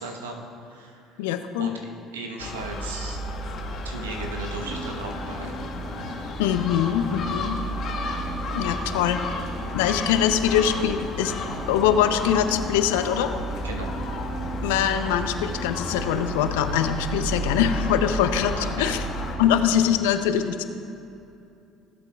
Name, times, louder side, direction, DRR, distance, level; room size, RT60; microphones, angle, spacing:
voice 1, 0.0-1.2 1.6-3.2 3.8-5.5 13.6-13.9 18.5-18.9, right 2 dB, 85° right, 2 dB, 1.0 m, -36 dB
voice 2, 1.2-1.7 6.4-7.6 8.5-9.2 9.7-11.3 11.7-13.3 14.6-19.0 19.4-20.6, left 9 dB, 75° left, 9 dB, 0.5 m, -23 dB
Gull seagull, 2.4-19.4, left 1 dB, 50° left, 1.2 m, -32 dB
sound 1, 4.6-19.8, right 2 dB, 50° right, 1.2 m, -38 dB
18.0 x 7.9 x 2.3 m, 2.7 s
hypercardioid pair, 60°, 0 cm